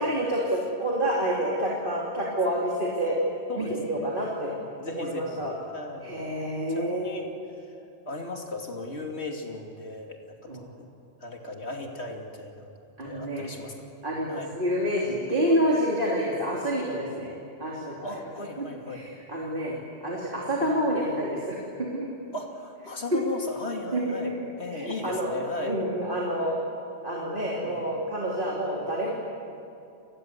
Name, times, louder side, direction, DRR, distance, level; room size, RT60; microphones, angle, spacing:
voice 1, 0.0-3.2 3.6-4.5 4.9-5.5 6.0-7.3 10.5-10.7 13.0-13.5 14.0-17.3 17.6-19.8 20.0-22.1 23.1-23.2 23.9-24.3 24.7-25.3 25.6-26.6 27.0-29.1, equal, 50° right, -3 dB, 3.4 m, -28 dB
voice 2, 3.5-6.3 6.7-7.3 7.7-7.8 8.1-10.5 10.8-10.9 11.2-12.7 13.0-13.7 14.3-14.5 15.4-15.6 18.0-19.0 20.6-20.8 22.3-25.8 27.4-27.8, left 2 dB, 85° left, 2 dB, 3.1 m, -37 dB
30.0 x 20.5 x 8.2 m, 2.6 s
omnidirectional pair, 1.1 m